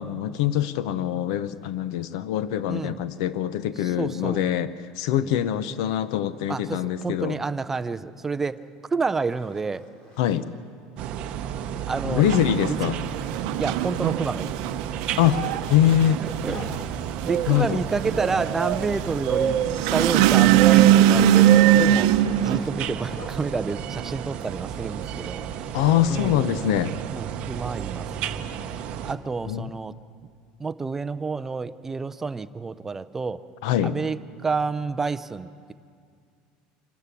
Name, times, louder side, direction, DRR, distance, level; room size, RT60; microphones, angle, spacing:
voice 1, 0.0-7.4 10.2-10.5 12.0-13.0 15.2-16.2 17.5-17.8 25.7-26.9 29.5-29.7 33.6-34.0, left 11 dB, 75° left, 14 dB, 0.7 m, -24 dB
voice 2, 3.8-4.4 5.1-5.3 6.5-8.6 8.9-9.8 11.9-12.8 13.6-14.5 16.2-16.7 17.2-25.8 26.1-26.9 27.1-28.1 29.0-29.9 30.6-33.4 33.8-34.2 34.4-35.7, right 4 dB, 10° right, 11 dB, 0.4 m, -29 dB
Zipper (clothing), 8.6-8.7 9.1-10.4 11.0-11.2 11.5-11.6 12.0-12.1 12.4-13.8 14.0-15.4 15.9-18.8 19.1-19.4 19.8-23.4 24.4-25.1, left 1 dB, 35° left, 2.7 m, -47 dB
sound 1, 11.0-29.2, right 9 dB, 40° right, 0.8 m, -31 dB
sound 2, 12.2-22.6, right 12 dB, 70° right, 0.7 m, -20 dB
26.0 x 12.5 x 8.4 m, 2.2 s
cardioid pair, 175°, 3 cm